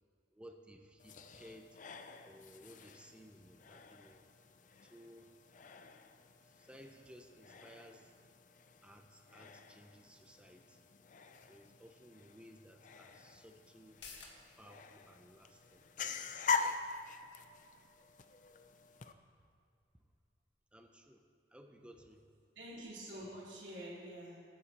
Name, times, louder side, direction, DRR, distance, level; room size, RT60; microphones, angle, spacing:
voice 1, 0.3-1.8 2.2-4.2 4.8-5.3 6.4-8.1 8.8-10.9 11.5-14.0 14.6-15.9 16.5-16.6 20.7-21.2 21.5-22.2, equal, 5° right, 4 dB, 0.5 m, -58 dB
sound 1, 1.0-19.1, left 5 dB, 45° left, 0.5 m, -44 dB
sound 2, 13.8-21.0 21.3-21.4, left 5 dB, 75° left, 1.5 m, -61 dB
voice 2, 22.5-24.5, right 1 dB, 85° right, -7 dB, 3.2 m, -47 dB
19.5 x 9.4 x 3.0 m, 2.4 s
head